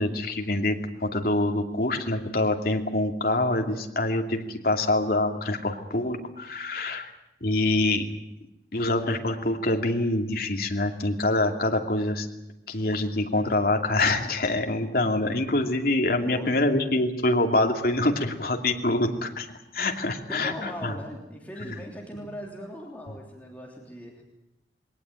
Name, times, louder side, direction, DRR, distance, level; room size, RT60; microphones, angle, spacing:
voice 1, 0.0-7.1 7.4-8.1 8.7-12.3 12.7-19.5 19.7-20.9, left 2 dB, 55° left, 4 dB, 2.6 m, -25 dB
voice 2, 16.2-16.6 20.3-24.2, equal, 10° left, -1 dB, 3.3 m, -39 dB
22.5 x 18.0 x 9.0 m, 0.91 s
head